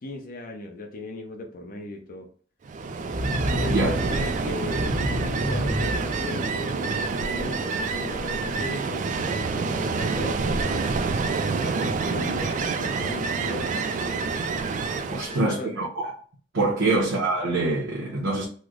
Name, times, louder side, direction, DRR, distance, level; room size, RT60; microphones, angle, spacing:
voice 1, 0.0-2.3 3.5-10.8 11.6-14.3 15.3-15.7 16.8-16.9, left 2 dB, 45° left, 0.7 m, -37 dB
Ocean, 2.7-15.4, right 4 dB, 40° right, 0.3 m, -27 dB
sound 1, 3.1-7.1, left 1 dB, 20° right, 0.7 m, -30 dB
voice 2, 15.1-16.1 16.5-18.4, right 2 dB, 80° right, 0.8 m, -25 dB
3.1 x 2.0 x 3.7 m
head